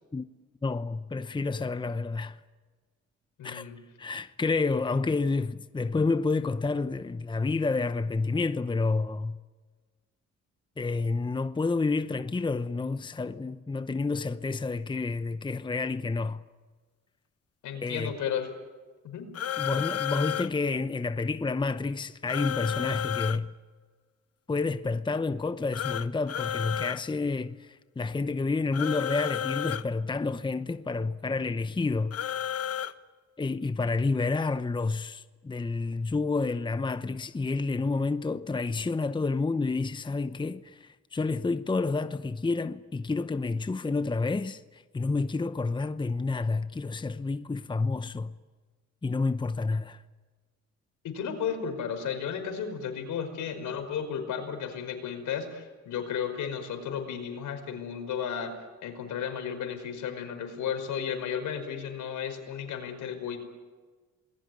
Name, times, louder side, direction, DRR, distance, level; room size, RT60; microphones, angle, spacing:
voice 1, 0.6-2.4 3.4-3.7 4.0-9.4 10.8-16.4 17.8-18.1 19.6-23.5 24.5-32.2 32.5-32.6 33.4-48.3 49.0-50.0, left 3 dB, 15° left, 0.8 m, -29 dB
voice 2, 3.4-3.8 17.6-18.5 19.0-19.3 51.0-58.5 58.8-63.4, left 7 dB, 80° left, 5.3 m, -34 dB
sound 1, 19.3-20.5 22.3-23.4 25.7-27.0 28.7-29.8 32.1-32.9, left 10 dB, 50° left, 1.1 m, -32 dB
28.5 x 21.0 x 9.4 m
cardioid pair, 90°, 30 cm